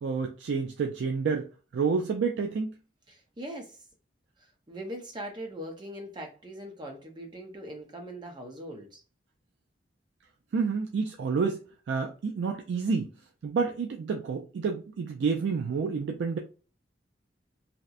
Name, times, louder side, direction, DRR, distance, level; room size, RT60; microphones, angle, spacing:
voice 1, 0.0-2.8 10.5-11.6 11.9-13.1 13.4-16.4, right 5 dB, 80° right, 0.3 m, -29 dB
voice 2, 3.1-3.8 4.7-9.0, equal, 25° right, 0.6 m, -41 dB
2.8 x 2.0 x 2.3 m
head